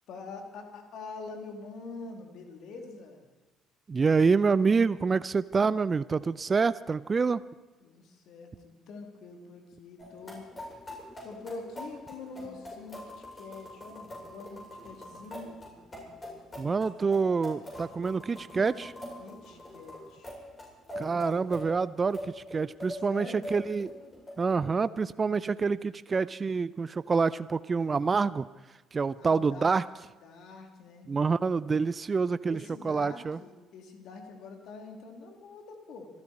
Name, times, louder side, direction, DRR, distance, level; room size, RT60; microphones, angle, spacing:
voice 1, 0.1-3.2 7.8-10.5 11.2-15.5 19.2-20.3 23.1-23.5 29.2-29.8 30.2-31.1 32.5-36.1, left 3 dB, 65° left, 3 dB, 2.8 m, -45 dB
voice 2, 3.9-7.4 16.6-18.9 21.0-23.9 24.4-28.5 28.9-29.8 31.1-32.6 32.8-33.4, right 5 dB, 35° right, 17 dB, 0.5 m, -27 dB
sound 1, 10.0-24.3, left 1 dB, 30° left, 7.6 m, -44 dB
26.0 x 13.0 x 4.2 m, 1.2 s
hypercardioid pair, 50°, 0 cm